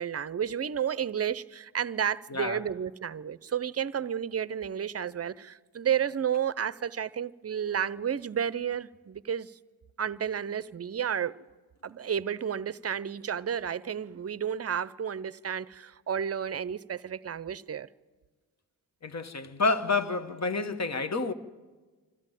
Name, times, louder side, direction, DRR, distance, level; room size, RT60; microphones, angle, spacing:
voice 1, 0.0-9.6 10.0-11.3 11.8-17.9, right 8 dB, 40° right, 0.6 m, -31 dB
voice 2, 19.0-21.3, left 3 dB, 40° left, 1.4 m, -29 dB
26.0 x 13.0 x 9.0 m
cardioid pair, 55°, 39 cm